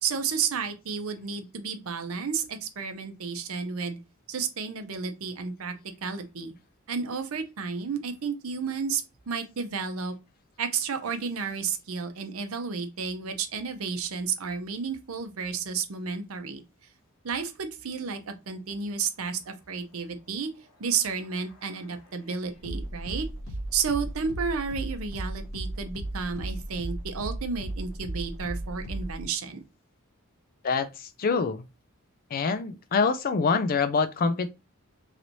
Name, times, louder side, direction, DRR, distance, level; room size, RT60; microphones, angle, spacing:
voice 1, 0.0-4.0 4.3-6.5 6.9-10.2 10.6-16.6 17.2-20.5 20.8-23.3 23.7-29.6, right 5 dB, 75° right, 0.6 m, -32 dB
sound 1, 20.6-29.3, right 1 dB, 80° left, 1.6 m, -36 dB
voice 2, 30.6-31.6 32.3-34.5, left 4 dB, 45° left, 0.4 m, -25 dB
3.2 x 3.0 x 2.6 m
head